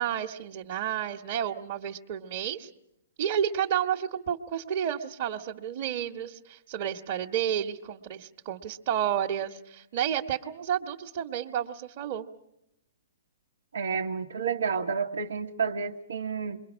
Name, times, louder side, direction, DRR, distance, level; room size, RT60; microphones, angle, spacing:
voice 1, 0.0-2.7 3.2-12.2, right 9 dB, 45° right, -1 dB, 1.4 m, -31 dB
voice 2, 13.7-16.6, right 6 dB, 90° right, 1 dB, 1.4 m, -30 dB
28.0 x 22.5 x 6.3 m, 0.79 s
hypercardioid pair, 145°, 0 cm